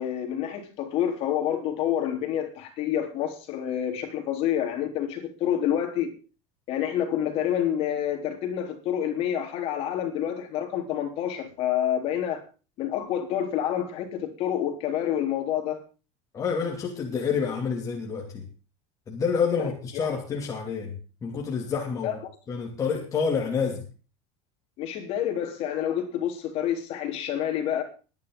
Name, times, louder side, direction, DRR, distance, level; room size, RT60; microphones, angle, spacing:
voice 1, 0.0-6.1 6.7-12.4 12.8-15.8 19.6-19.7 22.0-22.2 24.8-27.8, left 10 dB, 40° left, 3.8 m, -28 dB
voice 2, 16.3-18.4 19.1-21.0 21.2-22.2 22.5-23.8, left 6 dB, 20° left, 2.7 m, -28 dB
21.5 x 10.5 x 3.9 m
supercardioid pair, 165°, 15 cm